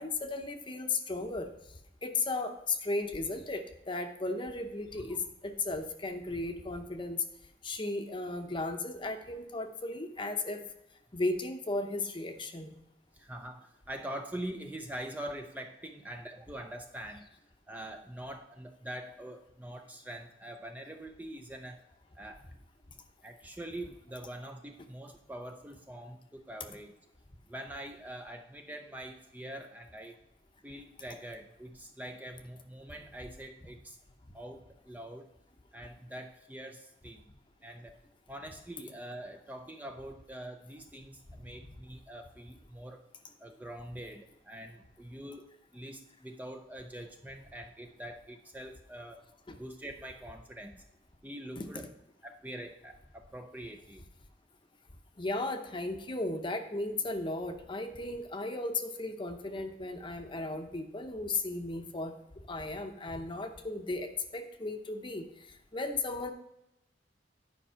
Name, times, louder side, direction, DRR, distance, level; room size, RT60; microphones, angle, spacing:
voice 1, 0.0-1.5 2.0-7.2 7.6-10.6 11.1-12.7 41.5-41.6 49.5-49.6 51.6-51.9 55.2-62.1 62.5-65.2 65.7-66.3, left 2 dB, 25° left, 7 dB, 0.8 m, -35 dB
voice 2, 13.1-17.3 17.7-21.8 22.1-22.4 23.2-27.0 27.4-30.2 30.6-34.0 34.3-35.3 35.7-37.2 37.6-38.0 38.3-43.0 43.4-49.3 49.6-50.8 51.2-51.9 52.2-54.0, right 1 dB, 10° right, 4 dB, 0.5 m, -44 dB
10.0 x 5.4 x 5.6 m, 0.87 s
head